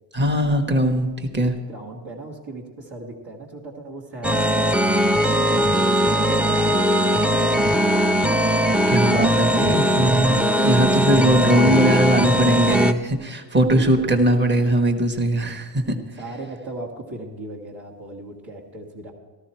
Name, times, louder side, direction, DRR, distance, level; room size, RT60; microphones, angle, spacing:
voice 1, 0.1-1.5 8.9-10.4 10.6-16.0, right 1 dB, 20° right, 5 dB, 1.3 m, -20 dB
voice 2, 1.7-8.1 8.6-10.2 13.6-14.2 16.2-19.1, right 1 dB, 70° right, -4 dB, 2.0 m, -37 dB
sound 1, 4.2-12.9, equal, 5° right, 0.4 m, -19 dB
14.0 x 13.5 x 4.4 m, 1.3 s
cardioid pair, 115°, 48 cm